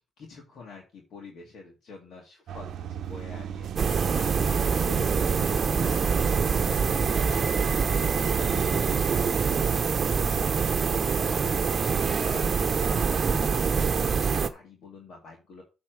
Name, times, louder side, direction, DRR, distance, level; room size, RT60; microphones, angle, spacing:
voice 1, 0.2-7.3 7.7-10.1 10.7-15.6, left 4 dB, 65° left, -1 dB, 2.6 m, -47 dB
sound 1, 2.5-10.7, right 9 dB, 70° right, 0.8 m, -36 dB
sound 2, 3.8-14.5, right 5 dB, 45° right, 1.0 m, -25 dB
8.8 x 4.3 x 6.5 m, 0.31 s
cardioid pair, 90°, 0 cm